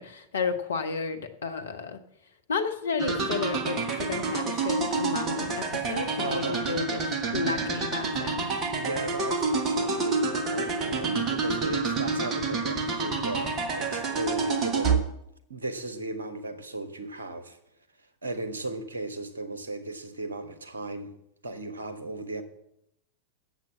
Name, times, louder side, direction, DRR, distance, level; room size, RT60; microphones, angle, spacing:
voice 1, 0.0-2.0 2.5-8.7, left 5 dB, 65° left, 1.1 m, -32 dB
sound 1, 3.0-15.0, right 4 dB, 30° right, 1.5 m, -28 dB
voice 2, 6.2-6.6 8.7-15.1 15.5-17.6 18.2-21.1 21.4-22.4, right 2 dB, 75° right, 1.3 m, -36 dB
8.3 x 7.8 x 7.3 m
figure-of-eight pair, 90°, 0 cm